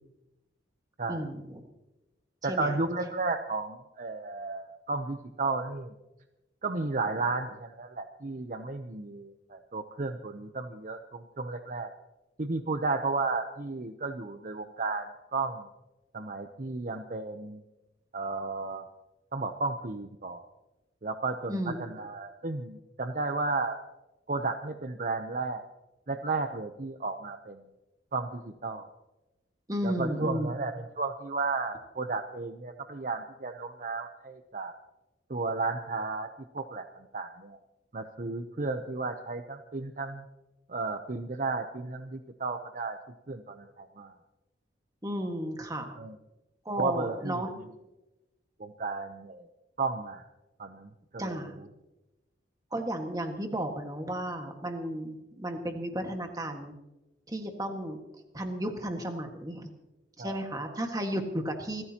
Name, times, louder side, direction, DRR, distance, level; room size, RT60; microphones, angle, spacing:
voice 1, 1.1-1.6 2.4-2.8 21.5-21.8 29.7-30.5 45.0-46.0 46.6-47.5 51.2-51.5 52.7-56.7 57.3-58.0 58.3-59.7 60.2-61.8, right 1 dB, 20° right, 4 dB, 1.7 m, -33 dB
voice 2, 2.4-5.9 6.6-11.9 12.4-15.7 16.1-17.6 18.1-18.9 19.3-20.4 21.0-23.8 24.3-25.6 26.1-27.6 28.1-28.9 29.8-34.7 35.3-36.3 36.5-37.6 37.9-40.2 40.7-43.0 43.3-44.1 46.0-46.1 46.8-47.3 48.6-49.5 49.8-50.2 50.6-51.4 60.2-60.4, right 3 dB, 45° right, 7 dB, 0.7 m, -33 dB
28.0 x 14.0 x 2.9 m, 1.0 s
head